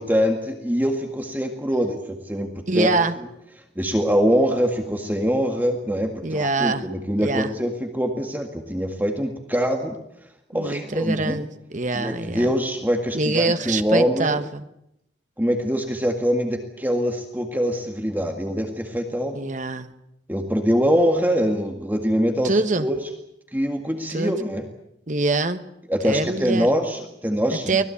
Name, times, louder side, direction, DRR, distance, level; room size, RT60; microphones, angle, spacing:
voice 1, 0.0-2.9 3.8-10.0 10.5-11.4 11.9-14.4 15.4-19.4 20.3-23.0 23.5-24.6 25.9-27.8, equal, 10° right, 3 dB, 1.9 m, -23 dB
voice 2, 2.7-3.1 6.2-6.8 7.2-7.5 10.5-12.5 13.1-14.6 19.3-19.9 22.4-22.9 24.1-24.3 25.1-25.6 26.0-26.7 27.5-27.8, right 3 dB, 45° right, 9 dB, 1.3 m, -24 dB
24.5 x 18.5 x 8.5 m, 0.80 s
head